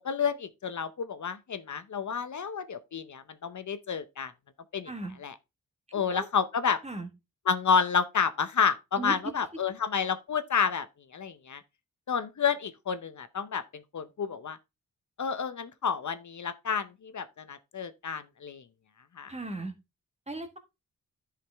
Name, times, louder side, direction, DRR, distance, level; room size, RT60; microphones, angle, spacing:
voice 1, 0.0-4.3 4.7-4.9 5.2-5.3 5.9-6.8 7.5-10.9 11.1-11.6 12.1-14.6 15.2-18.6 19.2-19.3, left 6 dB, 55° left, 0.7 m, -30 dB
voice 2, 5.9-6.3 6.8-7.1 9.0-9.2 19.3-19.7 20.3-20.6, right 2 dB, 20° right, 1.4 m, -37 dB
11.0 x 5.0 x 3.4 m
wide cardioid pair, 100°, 35 cm